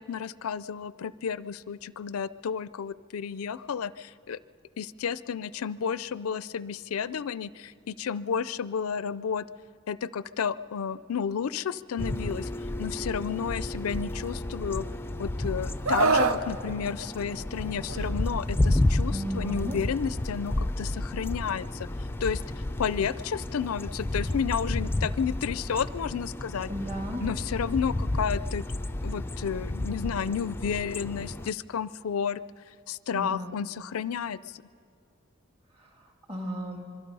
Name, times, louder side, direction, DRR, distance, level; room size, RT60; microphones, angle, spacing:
voice 1, 0.0-4.4 4.8-9.5 9.9-12.5 12.8-14.8 15.2-21.9 22.2-22.4 22.8-26.7 27.2-28.6 29.0-32.4 32.9-34.6, left 7 dB, 85° left, 17 dB, 0.4 m, -31 dB
sound 1, 12.0-31.5, left 1 dB, 10° left, 0.4 m, -31 dB
Screaming, 15.9-16.4 17.9-18.1, right 4 dB, 80° right, 0.8 m, -23 dB
voice 2, 19.1-19.8 26.7-27.2 33.1-33.5 36.3-36.8, equal, 30° right, 2 dB, 2.7 m, -34 dB
26.0 x 22.5 x 5.5 m, 2.3 s
head